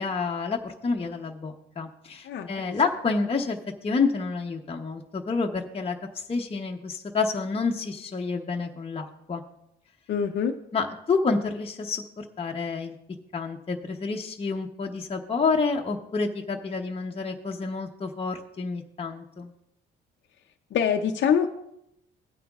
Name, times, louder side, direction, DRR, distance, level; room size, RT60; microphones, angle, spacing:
voice 1, 0.0-9.4 10.7-12.9 13.3-19.5, left 4 dB, 30° left, 0 dB, 0.8 m, -29 dB
voice 2, 2.2-2.8 10.1-10.5 20.7-21.5, left 7 dB, 65° left, 3 dB, 0.6 m, -25 dB
16.5 x 9.2 x 2.4 m, 0.82 s
cardioid pair, 90°, 20 cm